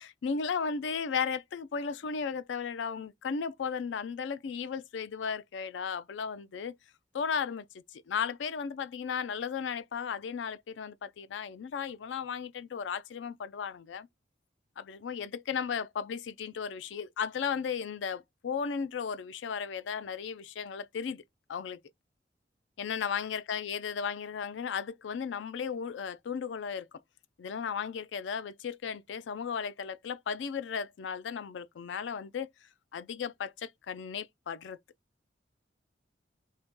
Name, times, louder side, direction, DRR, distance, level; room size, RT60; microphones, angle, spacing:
voice 1, 0.0-6.8 7.1-14.1 14.8-21.2 21.5-21.8 22.8-26.9 27.4-32.5 32.9-34.8, left 6 dB, 90° left, 0.4 m, -35 dB
2.9 x 2.8 x 3.5 m
head